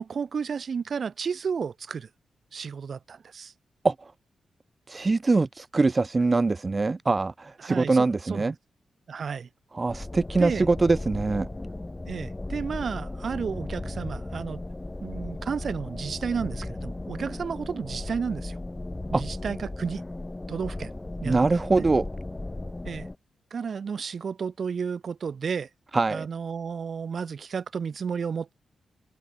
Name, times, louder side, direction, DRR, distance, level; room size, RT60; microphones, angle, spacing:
voice 1, 0.0-2.1 2.5-3.5 7.6-8.5 9.1-9.5 10.3-10.7 12.1-14.6 15.0-18.6 19.1-20.0 20.5-20.9 21.2-21.4 21.8-21.9 22.8-23.1 23.5-25.7 26.1-28.5, right 6 dB, 50° right, 2.1 m, -32 dB
voice 2, 4.9-8.5 9.7-11.5 19.1-19.2 21.2-22.1 25.9-26.3, right 3 dB, 25° right, 0.4 m, -23 dB
sound 1, 9.9-23.2, left 2 dB, 15° left, 2.4 m, -36 dB
open air
wide cardioid pair, 135°, 0 cm